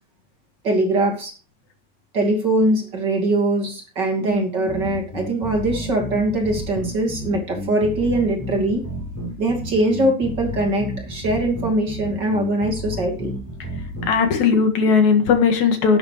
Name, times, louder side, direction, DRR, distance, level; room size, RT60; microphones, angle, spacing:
voice 1, 0.6-1.3 2.1-8.8 9.4-13.3, right 1 dB, 35° right, 1 dB, 3.0 m, -22 dB
sound 1, 4.7-14.2, equal, 5° left, 4.7 m, -31 dB
voice 2, 14.0-16.0, left 5 dB, 75° left, 6 dB, 3.1 m, -18 dB
11.5 x 8.7 x 4.9 m, 0.35 s
omnidirectional pair, 3.4 m